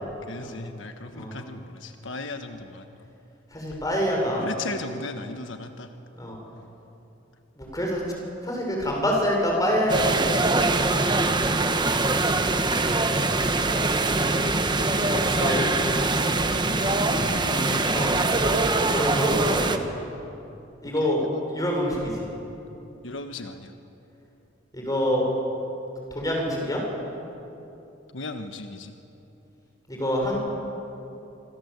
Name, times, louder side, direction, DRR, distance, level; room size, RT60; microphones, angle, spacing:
voice 1, 0.3-3.1 4.4-5.9 11.1-11.6 14.7-16.4 16.7-18.4 21.0-21.4 23.0-23.7 28.1-28.9, left 3 dB, 85° left, 6 dB, 1.5 m, -37 dB
voice 2, 3.5-4.4 6.1-6.4 7.6-8.0 8.4-10.6 15.1-15.6 16.9-17.1 17.9-18.2 18.7-19.8 20.8-22.3 24.7-25.3 26.1-26.8 29.9-30.4, equal, 20° left, 0 dB, 6.8 m, -26 dB
sound 1, 9.9-19.8, right 2 dB, 25° right, 1.3 m, -23 dB
27.5 x 25.0 x 8.2 m, 2.9 s
head